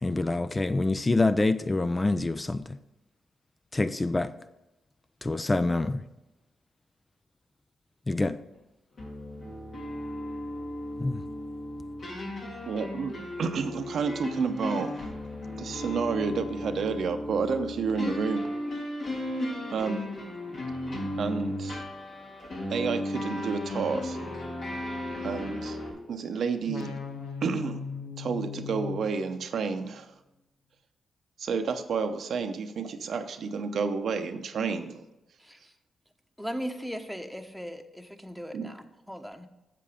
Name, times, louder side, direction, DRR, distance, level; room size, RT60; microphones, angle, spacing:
voice 1, 0.0-2.8 3.7-4.3 5.2-6.0 8.1-8.4 11.0-11.2, left 2 dB, 25° left, 0.5 m, -26 dB
sound 1, 9.0-25.9, left 1 dB, 65° left, 3.1 m, -35 dB
voice 2, 12.6-14.9 15.6-18.5 19.7-20.1 21.2-21.8 22.7-24.2 25.2-25.8 26.1-26.9 27.4-27.8 28.2-30.1 31.4-35.0 38.5-38.7, right 5 dB, 70° right, 0.7 m, -30 dB
sound 2, 24.2-26.2 26.7-29.9, left 5 dB, 85° left, 1.2 m, -40 dB
voice 3, 36.4-39.5, equal, ahead, 1.2 m, -38 dB
7.6 x 7.5 x 5.0 m
supercardioid pair, 50°, 0 cm